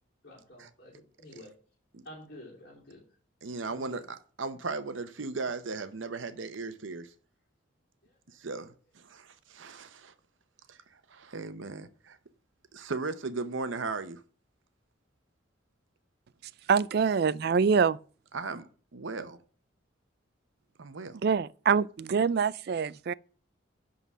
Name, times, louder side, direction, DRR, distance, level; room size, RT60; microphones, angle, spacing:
voice 1, 0.2-1.5 2.0-3.0 3.7-4.1 8.0-8.2, left 1 dB, 55° left, 3.4 m, -49 dB
voice 2, 3.4-7.1 8.3-10.1 10.7-12.2 12.7-14.2 18.3-19.4 20.8-21.2, right 3 dB, 70° right, 0.8 m, -37 dB
voice 3, 16.7-18.0 21.2-23.1, right 6 dB, 50° right, 0.3 m, -25 dB
11.0 x 3.9 x 6.1 m
head